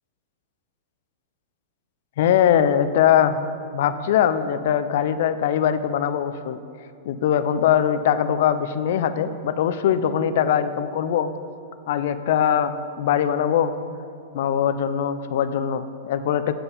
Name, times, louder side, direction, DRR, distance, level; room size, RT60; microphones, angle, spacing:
voice 1, 2.2-3.4 3.7-6.6 7.1-11.3 11.9-13.7 14.3-16.5, left 9 dB, 65° left, 12 dB, 0.4 m, -21 dB
6.8 x 4.4 x 5.1 m, 2.4 s
hypercardioid pair, 120°, 0 cm